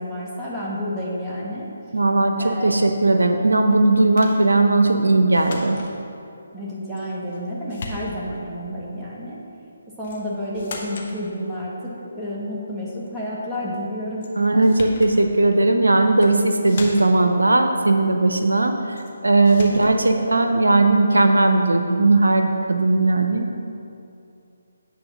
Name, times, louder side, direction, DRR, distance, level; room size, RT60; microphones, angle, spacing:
voice 1, 0.0-1.7 2.4-2.7 6.5-9.4 10.0-15.0 20.0-20.4, equal, 10° right, -7 dB, 1.4 m, -30 dB
voice 2, 1.9-2.3 2.6-5.8 14.4-18.7 19.2-23.6, right 2 dB, 80° right, 5 dB, 0.5 m, -17 dB
sound 1, 4.2-4.4 5.3-5.9 7.0-7.4 7.7-8.4 10.0-10.2 10.5-11.1 14.2-14.3 14.6-15.1 16.1-16.3 16.6-17.3 19.0-19.1 19.5-20.0, left 3 dB, 45° left, 1.0 m, -37 dB
8.8 x 3.4 x 5.9 m, 2.7 s
figure-of-eight pair, 150°, 0 cm